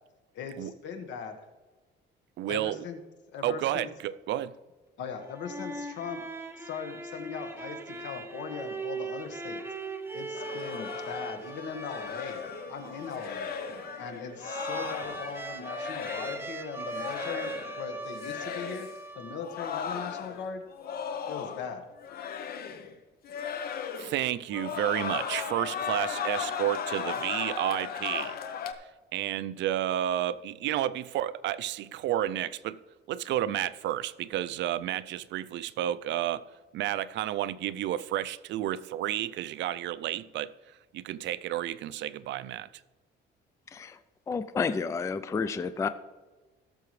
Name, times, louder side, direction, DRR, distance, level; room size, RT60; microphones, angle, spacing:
voice 1, 0.3-1.4 2.5-3.0 3.3-3.9 5.0-6.2 6.6-9.6 10.1-12.4 12.7-13.5 13.9-20.6 21.3-21.8, left 6 dB, 70° left, 1.5 m, -39 dB
voice 2, 2.4-2.8 3.4-4.5 24.0-28.4 28.8-32.8 33.1-36.4 36.7-42.7, right 12 dB, 70° right, 0.5 m, -31 dB
sound 1, 5.2-19.8, right 3 dB, 10° right, 0.7 m, -40 dB
sound 2, 10.3-16.5 16.9-17.9 18.1-18.9 19.4-21.7 22.0-22.9 23.2-24.2 24.5-28.7, left 7 dB, 50° left, 0.8 m, -36 dB
voice 3, 44.3-45.9, left 5 dB, 15° left, 0.3 m, -30 dB
17.0 x 6.9 x 3.2 m
cardioid pair, 150°, 20 cm